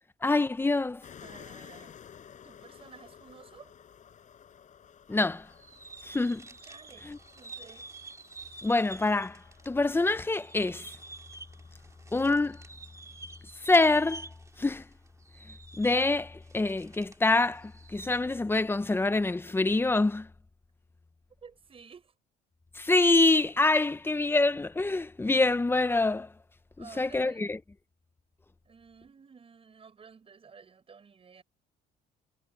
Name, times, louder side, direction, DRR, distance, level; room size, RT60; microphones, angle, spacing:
voice 1, 0.2-1.0 5.1-5.5 6.0-6.4 7.1-7.2 8.6-10.9 12.1-12.6 13.6-14.3 14.6-14.8 15.8-20.3 22.7-26.3 26.8-27.6, left 2 dB, 15° left, 0.9 m, -26 dB
sound 1, 1.0-13.5, left 8 dB, 45° left, 6.9 m, -54 dB
voice 2, 1.2-2.0 2.4-3.7 6.6-7.1 7.3-7.9 21.4-22.1 26.8-27.5 28.6-31.4, right 6 dB, 35° right, 7.3 m, -52 dB
sound 2, 5.5-9.7 9.9-17.3 17.6-18.2, right 3 dB, 20° right, 2.6 m, -48 dB
cardioid pair, 110°, 17 cm